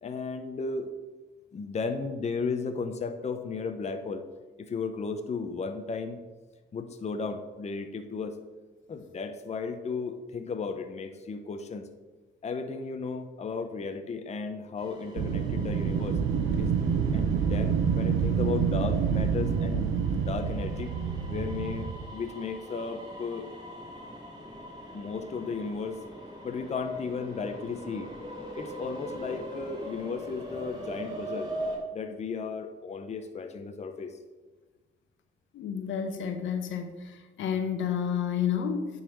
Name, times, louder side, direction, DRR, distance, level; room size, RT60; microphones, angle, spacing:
voice 1, 0.0-0.9 1.5-4.2 4.7-6.2 6.7-8.4 8.9-11.9 12.4-16.2 16.6-16.8 17.1-20.9 21.3-23.5 24.9-26.0 26.4-28.1 28.6-31.5 31.9-34.2, left 4 dB, 35° left, 7 dB, 0.7 m, -34 dB
sound 1, 14.8-31.8, equal, 20° right, 2.8 m, -42 dB
Wind, 15.2-22.1, right 7 dB, 80° right, 0.8 m, -27 dB
voice 2, 35.5-38.9, left 8 dB, 75° left, 7 dB, 1.0 m, -30 dB
9.7 x 4.1 x 6.2 m, 1.3 s
cardioid pair, 90°, 20 cm